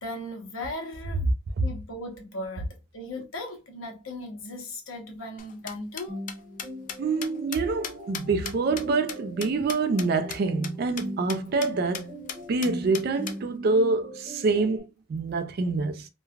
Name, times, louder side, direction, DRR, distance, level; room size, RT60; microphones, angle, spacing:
voice 1, 0.0-1.3 1.6-2.7 2.9-6.2, left 1 dB, 75° left, 0.9 m, -37 dB
sound 1, 5.4-10.1 10.3-10.4 10.6-10.7 11.0-11.1 11.3-11.7 11.9-12.0 12.3-13.4, left 7 dB, 40° left, 0.3 m, -36 dB
sound 2, 6.1-14.8, equal, 5° right, 0.9 m, -40 dB
voice 2, 7.0-12.2 12.5-16.1, right 3 dB, 45° right, 0.3 m, -26 dB
3.1 x 2.1 x 2.3 m
head